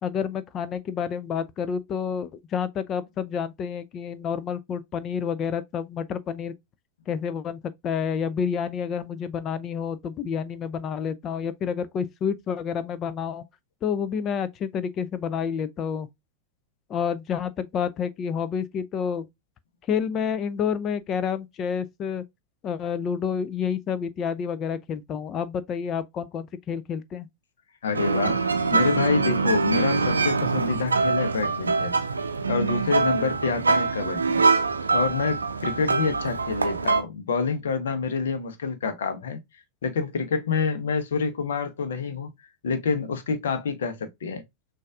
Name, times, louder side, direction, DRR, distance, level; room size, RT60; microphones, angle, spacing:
voice 1, 0.0-6.5 7.1-13.4 13.8-16.1 16.9-19.3 19.9-22.2 22.6-27.3, left 7 dB, 30° left, 0.4 m, -29 dB
voice 2, 27.8-31.9 32.5-34.4 34.9-39.4 39.8-42.3 42.6-44.4, left 5 dB, 65° left, 0.9 m, -27 dB
sound 1, 27.9-37.0, right 4 dB, 75° right, 0.5 m, -24 dB
6.2 x 2.6 x 2.3 m
figure-of-eight pair, 90°, 0 cm